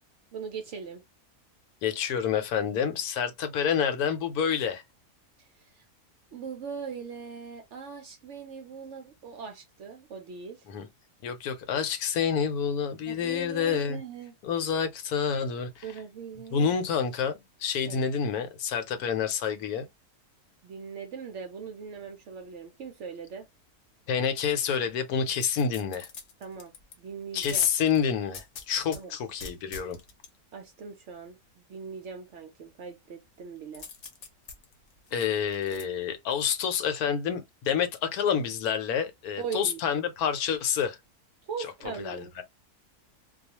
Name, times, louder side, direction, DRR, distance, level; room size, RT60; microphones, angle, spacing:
voice 1, 0.3-1.0 5.4-5.9 6.3-10.6 13.1-14.3 15.8-16.7 17.9-18.0 20.6-23.5 26.4-26.7 27.0-27.7 28.9-29.1 30.5-33.9 39.4-39.8 41.5-42.3, right 6 dB, 65° right, 0.7 m, -40 dB
voice 2, 1.8-4.8 10.7-10.9 11.2-14.0 14.4-15.8 16.5-17.3 17.6-19.9 24.1-26.1 27.3-30.0 35.1-41.0 41.6-41.7 42.0-42.4, left 7 dB, 80° left, 1.1 m, -28 dB
sound 1, 25.4-27.0 27.4-29.0 29.4-30.3 33.7-35.8 36.3-36.4, left 5 dB, 60° left, 0.9 m, -44 dB
2.3 x 2.3 x 2.7 m
omnidirectional pair, 1.6 m